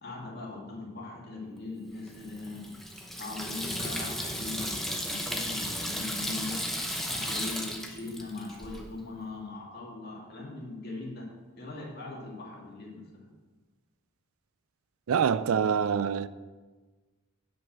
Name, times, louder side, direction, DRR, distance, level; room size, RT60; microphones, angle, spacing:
voice 1, 0.0-2.8 3.2-6.6 7.1-13.3, left 3 dB, 45° left, 2.3 m, -40 dB
Water tap faucet / Sink (filling or washing), 2.1-8.8, equal, ahead, 0.7 m, -35 dB
voice 2, 15.1-16.3, right 7 dB, 80° right, 0.4 m, -25 dB
9.6 x 5.3 x 6.2 m
head